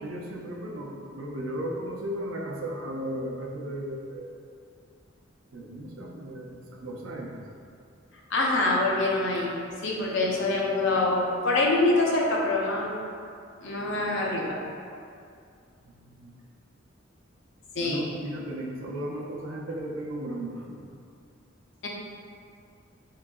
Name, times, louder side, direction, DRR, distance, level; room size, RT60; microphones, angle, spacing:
voice 1, 0.0-4.4 5.5-7.4 15.9-16.3 17.8-20.8, right 1 dB, 75° right, -1 dB, 0.5 m, -35 dB
voice 2, 8.3-9.5 9.8-13.1 13.6-14.6 17.7-18.1 21.8-21.9, left 2 dB, 65° left, -3 dB, 0.6 m, -25 dB
3.8 x 3.6 x 2.3 m, 2.4 s
head